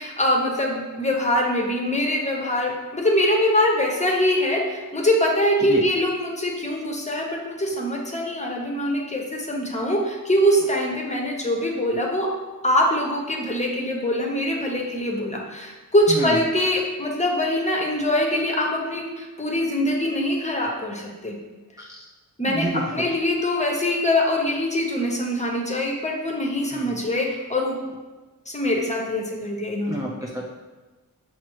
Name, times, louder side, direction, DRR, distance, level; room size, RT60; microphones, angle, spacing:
voice 1, 0.0-12.3 12.6-21.3 22.4-27.8 28.5-30.0, left 1 dB, 20° left, -1 dB, 0.8 m, -23 dB
voice 2, 22.5-22.9 26.7-27.0 29.8-30.5, right 1 dB, 10° right, -3 dB, 0.4 m, -29 dB
5.9 x 2.1 x 3.0 m, 1.2 s
cardioid pair, 65°, 36 cm